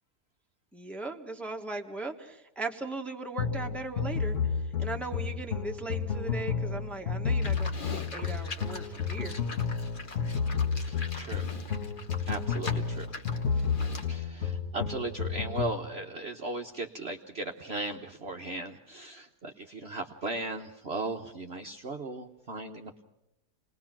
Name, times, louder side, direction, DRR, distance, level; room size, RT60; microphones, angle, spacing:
voice 1, 0.7-4.4 4.8-9.4 13.5-13.7, right 3 dB, ahead, 2 dB, 1.3 m, -38 dB
sound 1, 3.4-15.8, left 6 dB, 50° left, 1.6 m, -31 dB
Livestock farm animals working animals, 7.4-14.2, left 3 dB, 30° left, 1.4 m, -43 dB
voice 2, 10.9-11.5 12.3-13.1 14.1-23.0, right 2 dB, 45° right, 3 dB, 1.0 m, -37 dB
28.0 x 20.0 x 6.0 m, 0.89 s
omnidirectional pair, 1.8 m